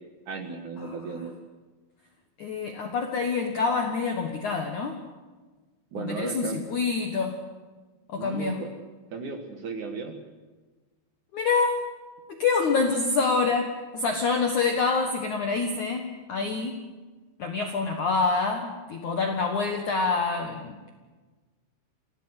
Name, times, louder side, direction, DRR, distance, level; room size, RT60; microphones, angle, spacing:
voice 1, 0.3-1.3 5.9-6.7 8.2-8.7 9.1-10.2, right 4 dB, 60° right, 4 dB, 2.1 m, -35 dB
voice 2, 0.8-1.2 2.4-5.0 6.0-7.4 8.1-8.6 11.3-11.8 12.3-16.8 17.4-20.9, left 4 dB, 70° left, 4 dB, 1.9 m, -26 dB
26.5 x 17.0 x 8.2 m, 1.3 s
omnidirectional pair, 5.8 m